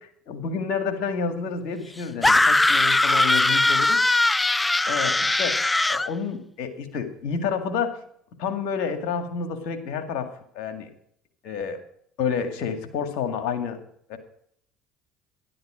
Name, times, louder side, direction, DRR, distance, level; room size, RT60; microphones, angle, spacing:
voice 1, 0.0-4.0 4.9-5.6 5.9-8.0 8.4-10.3 10.5-10.9 11.4-11.8 12.2-13.8 14.1-14.2, left 6 dB, 70° left, 7 dB, 2.1 m, -29 dB
sound 1, 2.2-6.1, left 2 dB, 15° left, 0.4 m, -20 dB
12.0 x 11.0 x 5.0 m, 0.65 s
hypercardioid pair, 70°, 0 cm